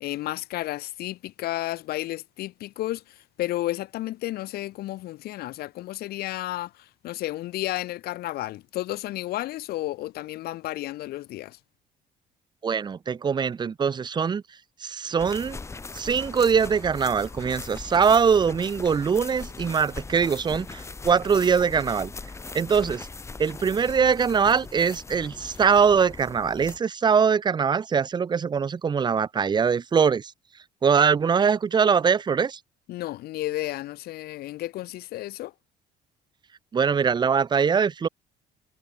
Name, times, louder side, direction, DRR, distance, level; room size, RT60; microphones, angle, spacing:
voice 1, 0.0-11.6 32.9-35.5, left 16 dB, 70° left, 0.5 m, -32 dB
voice 2, 12.6-14.4 14.8-15.6 15.9-22.1 22.5-23.1 23.4-30.3 30.8-32.6 36.7-38.1, right 6 dB, 25° right, 0.6 m, -22 dB
Walking on grass, 15.2-26.8, left 3 dB, 15° left, 0.7 m, -40 dB
cardioid pair, 110°, 17 cm